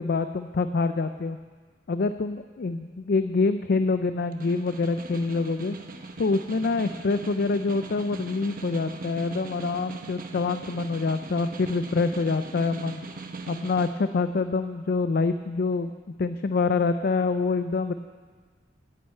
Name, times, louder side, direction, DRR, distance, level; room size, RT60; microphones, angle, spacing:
voice 1, 0.0-1.4 1.9-5.8 6.2-13.0 13.5-15.9 16.2-17.9, left 4 dB, 55° left, 10 dB, 0.4 m, -26 dB
Snare drum, 4.2-14.0, right 3 dB, 50° right, 0.9 m, -40 dB
11.0 x 8.9 x 8.8 m, 1.5 s
head